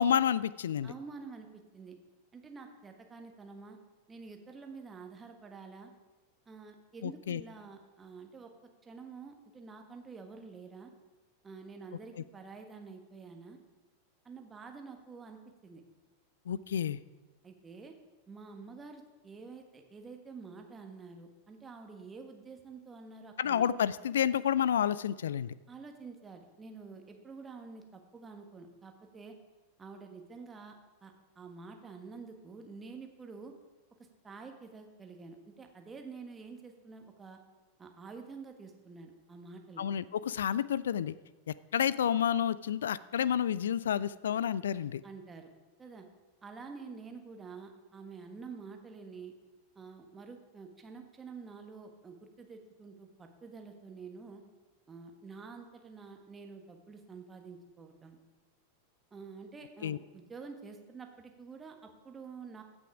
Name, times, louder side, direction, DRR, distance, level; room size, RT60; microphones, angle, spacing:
voice 1, 0.0-0.9 7.0-7.4 16.5-17.0 23.4-25.5 39.8-41.1 41.5-45.0 59.8-60.0, left 9 dB, 65° left, 19 dB, 0.3 m, -30 dB
voice 2, 0.8-2.0 2.3-3.8 4.1-5.9 6.5-8.5 8.8-10.9 11.4-13.6 14.2-15.8 17.4-17.9 18.3-23.7 25.7-29.4 29.8-30.8 31.0-33.5 34.2-37.4 37.8-39.9 45.0-45.5 45.8-46.1 46.4-49.3 49.7-54.4 54.9-58.2 59.1-62.6, right 4 dB, 15° right, 4 dB, 1.4 m, -48 dB
15.5 x 6.2 x 4.9 m, 1.3 s
figure-of-eight pair, 90°, 0 cm